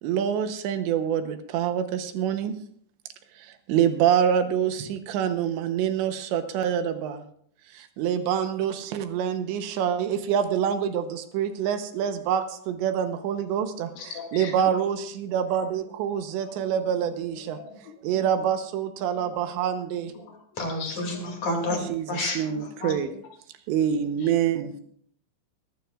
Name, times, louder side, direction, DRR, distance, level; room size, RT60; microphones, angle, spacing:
voice 1, 0.0-2.5 3.4-7.2 7.7-13.9 14.3-17.6 18.0-20.1 21.9-23.1 23.7-24.7, right 8 dB, 75° right, 8 dB, 3.0 m, -26 dB
voice 2, 13.9-14.7 16.1-16.7 17.0-18.5 19.2-19.5 20.1-20.4 21.1-21.3 23.0-23.1, left 5 dB, 90° left, -1 dB, 4.5 m, -43 dB
voice 3, 20.6-21.8 22.1-22.9 24.2-24.3, left 2 dB, 45° left, 2 dB, 3.1 m, -30 dB
22.5 x 12.5 x 2.4 m, 0.63 s
omnidirectional pair, 5.5 m